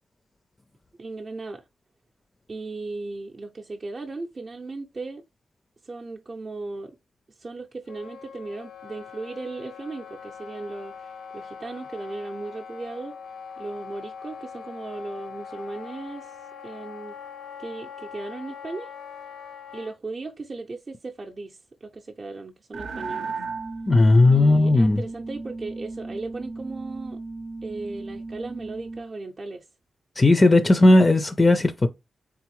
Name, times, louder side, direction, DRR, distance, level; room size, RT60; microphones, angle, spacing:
voice 1, 1.0-1.6 2.5-5.2 5.8-7.0 7.3-13.2 13.6-16.4 16.6-17.1 17.6-18.9 19.7-23.3 24.2-27.2 27.6-29.7, right 3 dB, 40° right, 0.5 m, -36 dB
Wind instrument woodwind instrument, 7.9-19.9, left 6 dB, 90° left, 0.6 m, -42 dB
sound 1, 22.7-29.1, right 3 dB, 80° right, 0.6 m, -35 dB
voice 2, 23.9-25.0 30.2-31.9, left 2 dB, 25° left, 0.4 m, -16 dB
3.8 x 3.5 x 3.0 m
cardioid pair, 95°, 0 cm